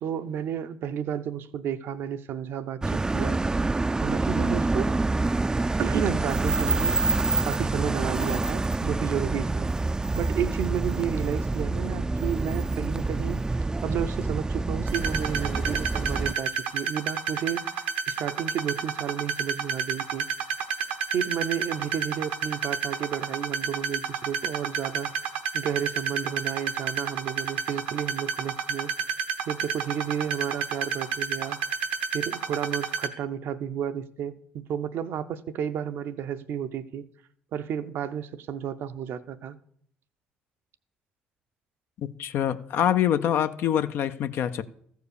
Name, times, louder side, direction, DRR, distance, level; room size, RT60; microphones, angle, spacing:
voice 1, 0.0-3.7 4.0-4.9 5.8-7.0 7.4-9.7 10.1-20.3 21.1-25.1 25.5-28.9 29.5-31.6 32.1-37.0 37.5-39.6, right 8 dB, 65° right, 0.6 m, -32 dB
sound 1, 2.8-16.3, right 3 dB, 15° right, 0.4 m, -27 dB
sound 2, 14.9-33.1, right 7 dB, 90° right, 0.9 m, -30 dB
voice 2, 42.2-44.6, left 10 dB, 65° left, 0.5 m, -25 dB
14.0 x 4.7 x 6.8 m
hypercardioid pair, 60°, 4 cm